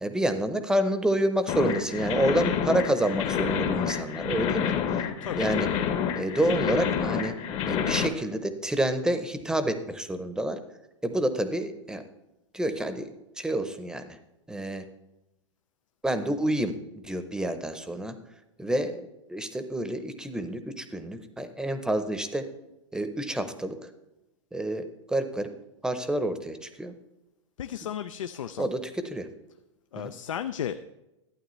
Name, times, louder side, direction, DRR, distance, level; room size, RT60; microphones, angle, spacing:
voice 1, 0.0-5.0 5.4-5.7 6.2-7.3 7.7-10.6 11.0-12.0 12.5-13.1 13.4-14.2 14.5-14.8 16.0-16.8 17.0-18.1 18.6-22.4 22.9-23.9 24.5-25.5 25.8-26.9 27.8-27.9 28.6-29.3 30.0-30.1, right 1 dB, 5° right, 10 dB, 0.7 m, -28 dB
sound 1, 1.5-8.1, left 8 dB, 35° left, 0.8 m, -28 dB
voice 2, 27.6-28.7 29.9-30.8, left 9 dB, 90° left, 10 dB, 0.4 m, -34 dB
11.5 x 8.8 x 3.1 m, 0.95 s
hypercardioid pair, 120°, 16 cm